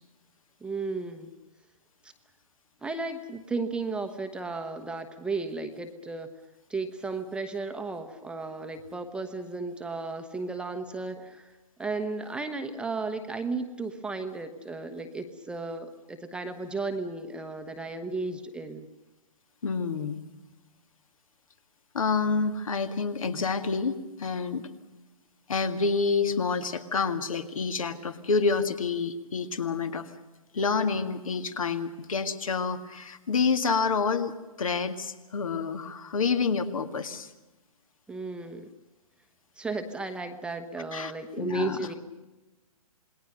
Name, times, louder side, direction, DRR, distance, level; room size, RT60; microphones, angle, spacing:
voice 1, 0.6-1.3 2.0-2.1 2.8-6.3 6.7-11.5 11.8-18.9 38.1-38.7 39.6-42.0, right 3 dB, 5° right, 6 dB, 1.1 m, -34 dB
voice 2, 19.6-20.2 21.9-24.7 25.5-30.1 30.5-34.3 34.6-37.3 40.9-41.1 41.4-41.8, left 4 dB, 65° left, 9 dB, 2.0 m, -28 dB
27.5 x 20.5 x 6.7 m, 1.1 s
figure-of-eight pair, 125°, 19 cm